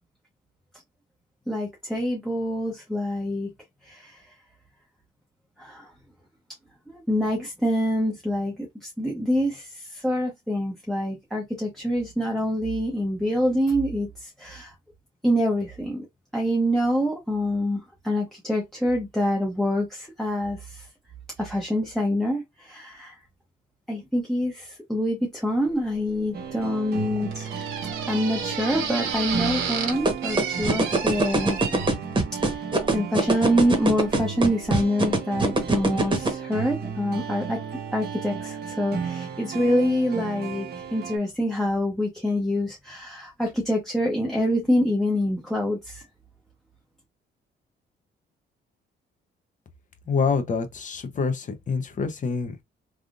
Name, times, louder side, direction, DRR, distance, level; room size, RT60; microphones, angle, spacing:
voice 1, 1.5-3.5 3.8-4.2 5.6-5.9 6.9-14.7 15.2-16.1 16.3-20.9 21.4-23.2 23.9-27.5 28.1-31.6 32.5-32.6 32.9-37.6 37.9-46.0, equal, ahead, 0.8 m, -26 dB
sound 1, 25.6-31.9, right 6 dB, 85° right, 1.0 m, -32 dB
sound 2, 26.3-41.2, right 6 dB, 55° right, 0.8 m, -35 dB
sound 3, 30.0-36.3, right 2 dB, 25° right, 1.1 m, -21 dB
voice 2, 50.1-52.6, left 5 dB, 40° left, 0.8 m, -26 dB
3.5 x 2.5 x 2.4 m
cardioid pair, 90°, 20 cm